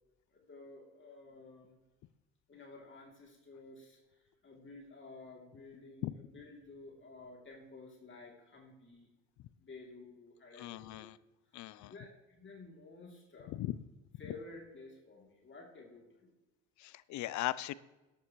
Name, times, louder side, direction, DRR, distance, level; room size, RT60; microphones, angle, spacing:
voice 1, 0.3-1.7 2.5-4.0 4.4-9.1 9.6-11.1 11.8-13.5 14.2-16.3, left 3 dB, 30° left, 0 dB, 2.9 m, -53 dB
voice 2, 10.6-11.2 11.5-11.9 13.5-13.7 16.8-17.7, left 15 dB, 50° left, 18 dB, 0.6 m, -38 dB
14.0 x 10.0 x 3.1 m, 1.1 s
hypercardioid pair, 70°, 39 cm